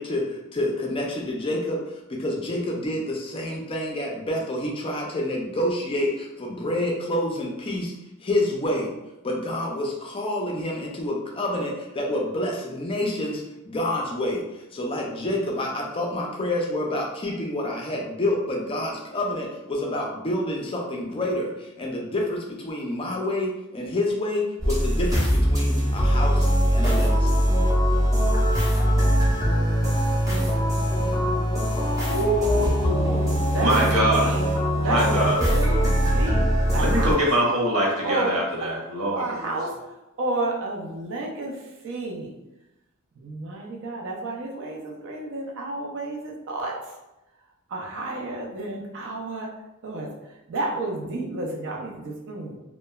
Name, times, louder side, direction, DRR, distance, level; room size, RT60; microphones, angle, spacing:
voice 1, 0.0-7.9 8.2-8.9 9.2-27.4, left 1 dB, 25° left, 0 dB, 0.4 m, -28 dB
sound 1, 24.6-37.1, equal, 15° right, 0.7 m, -22 dB
voice 2, 32.1-34.4 34.8-37.3 38.0-38.3 38.6-38.7 39.1-39.7 40.2-41.6 41.8-42.3 43.2-46.8 47.7-49.5 49.8-50.1 50.5-52.6, right 1 dB, 55° right, -1 dB, 0.5 m, -30 dB
voice 3, 33.6-34.3 34.8-35.4 36.8-39.6, right 1 dB, 85° right, -3 dB, 0.8 m, -23 dB
2.9 x 2.1 x 2.2 m, 0.96 s
head